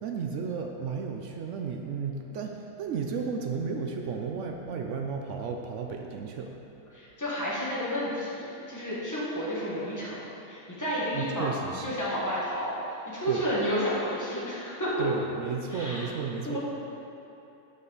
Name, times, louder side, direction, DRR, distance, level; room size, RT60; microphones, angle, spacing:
voice 1, 0.0-6.5 11.1-11.9 13.3-13.4 15.0-16.6, right 5 dB, 65° right, 2 dB, 0.7 m, -33 dB
voice 2, 6.9-11.5 11.8-15.0 15.7-16.0 16.4-16.6, equal, 10° left, -8 dB, 1.5 m, -31 dB
8.2 x 5.4 x 4.0 m, 2.9 s
omnidirectional pair, 1.6 m